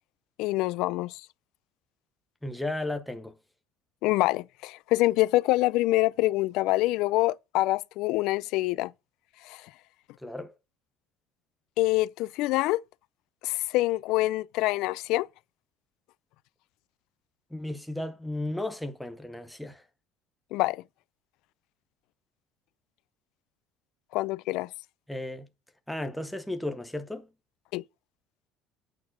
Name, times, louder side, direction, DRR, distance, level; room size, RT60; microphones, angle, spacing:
voice 1, 0.4-1.2 4.0-8.9 9.4-9.6 11.8-12.8 13.4-15.3 20.5-20.8 24.1-24.7 27.7-27.8, left 18 dB, 65° left, 0.4 m, -26 dB
voice 2, 2.4-3.4 10.2-10.5 17.5-19.8 25.1-25.5 25.9-27.3, left 1 dB, ahead, 0.8 m, -34 dB
8.6 x 4.6 x 6.0 m
cardioid pair, 175°, 0 cm